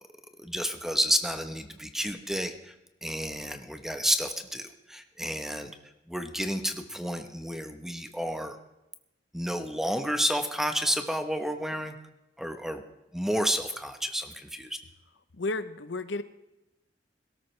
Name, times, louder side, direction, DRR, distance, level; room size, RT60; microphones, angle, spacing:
voice 1, 0.4-2.7 3.0-5.7 6.1-8.6 9.3-12.0 12.4-12.8 13.1-14.8, equal, ahead, 7 dB, 1.0 m, -30 dB
voice 2, 15.4-16.2, left 2 dB, 75° left, 12 dB, 0.8 m, -32 dB
22.0 x 13.0 x 3.3 m, 0.93 s
head